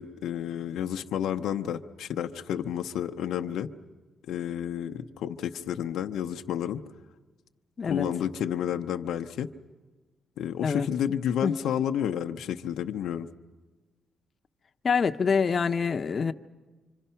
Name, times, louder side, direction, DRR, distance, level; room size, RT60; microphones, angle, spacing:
voice 1, 0.0-3.7 4.3-6.8 7.8-9.5 10.4-13.3, left 9 dB, 85° left, 6 dB, 0.7 m, -30 dB
voice 2, 14.8-16.3, left 6 dB, 50° left, 7 dB, 0.8 m, -26 dB
26.5 x 25.5 x 5.7 m, 1.3 s
cardioid pair, 65°, 0 cm